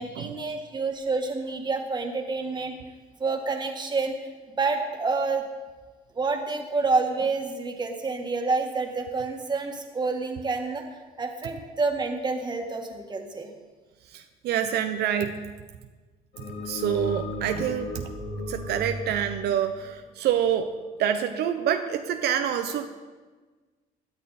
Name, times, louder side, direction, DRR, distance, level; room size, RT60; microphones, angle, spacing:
voice 1, 0.0-2.7 3.2-4.2 4.6-5.4 6.1-10.8 11.2-13.5, right 3 dB, 25° right, 3 dB, 1.9 m, -28 dB
voice 2, 14.1-15.4 16.4-18.1 18.5-20.7 21.0-22.9, right 9 dB, 70° right, 6 dB, 0.8 m, -27 dB
sound 1, 16.3-20.7, left 1 dB, 85° left, 3.9 m, -35 dB
17.0 x 10.5 x 4.2 m, 1.4 s
cardioid pair, 110°, 17 cm